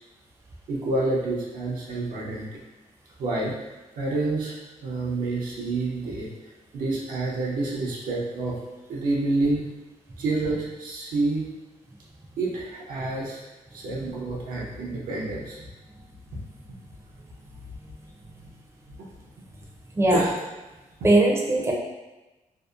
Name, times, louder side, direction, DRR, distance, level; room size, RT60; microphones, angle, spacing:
voice 1, 0.7-2.6 3.2-4.5 4.8-6.3 6.7-8.6 8.9-9.7 10.2-11.5 12.4-13.4 13.7-15.7 20.1-20.3, right 2 dB, 80° right, -5 dB, 0.6 m, -28 dB
voice 2, 20.0-20.3 21.0-21.7, right 1 dB, 20° right, -1 dB, 0.5 m, -20 dB
2.7 x 2.0 x 2.4 m, 1.1 s
cardioid pair, 70°, 14 cm